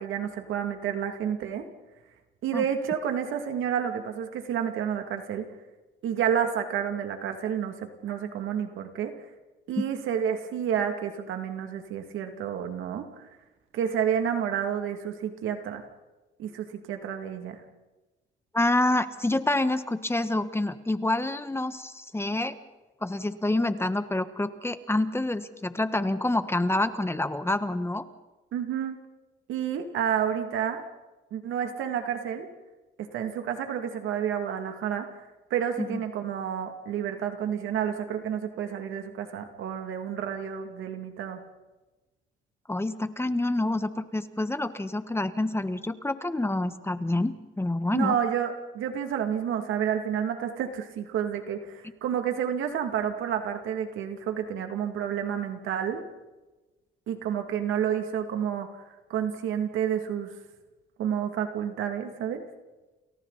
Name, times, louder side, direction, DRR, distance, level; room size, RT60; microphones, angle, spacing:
voice 1, 0.0-1.7 2.4-5.5 6.0-9.1 9.7-13.0 13.7-15.8 16.4-17.6 28.5-29.0 29.5-30.8 31.3-32.5 33.0-35.1 35.5-41.4 47.9-56.0 57.1-58.7 59.1-60.4 61.0-62.4, right 8 dB, 85° right, 5 dB, 2.6 m, -30 dB
voice 2, 18.5-22.6 23.0-28.0 35.8-36.0 42.7-48.2, left 2 dB, 10° left, 11 dB, 1.4 m, -27 dB
29.5 x 28.5 x 4.2 m, 1.1 s
cardioid pair, 90°, 20 cm